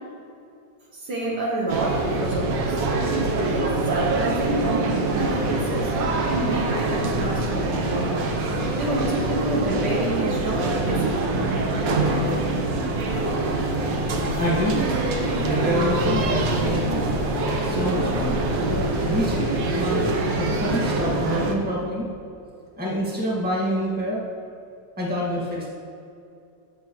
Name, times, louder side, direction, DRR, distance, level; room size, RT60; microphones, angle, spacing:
voice 1, 0.9-2.9 3.5-6.0 6.3-8.1 8.7-11.2, right 2 dB, 65° right, -4 dB, 1.9 m, -28 dB
sound 1, 1.7-21.5, right 2 dB, 85° right, 1.6 m, -24 dB
voice 2, 14.4-14.8 15.4-18.4 19.0-22.1 22.8-24.2 25.0-25.7, equal, 5° right, -5 dB, 1.7 m, -27 dB
14.5 x 6.2 x 3.1 m, 2.5 s
omnidirectional pair, 1.9 m